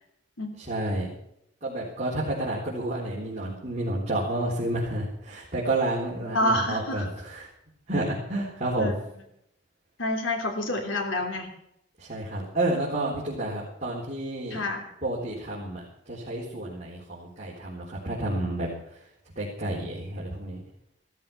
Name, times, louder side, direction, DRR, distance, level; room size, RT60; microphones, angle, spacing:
voice 1, 0.7-1.1 1.6-7.5 7.9-8.9 12.0-14.6 15.0-18.7 19.4-20.6, right 1 dB, 35° right, -6 dB, 3.9 m, -30 dB
voice 2, 6.2-7.1 8.8-8.9 10.0-11.5 14.5-14.9, left 1 dB, 90° left, 3 dB, 3.2 m, -28 dB
16.0 x 13.5 x 5.9 m, 0.76 s
head